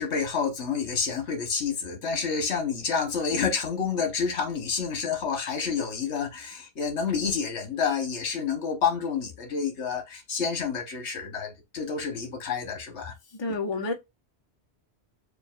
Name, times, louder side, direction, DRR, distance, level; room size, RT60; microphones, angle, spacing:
voice 1, 0.0-13.1, left 6 dB, 85° left, 1.4 m, -29 dB
voice 2, 13.3-13.9, left 3 dB, 30° left, 0.7 m, -29 dB
6.6 x 2.4 x 2.4 m
omnidirectional pair, 1.1 m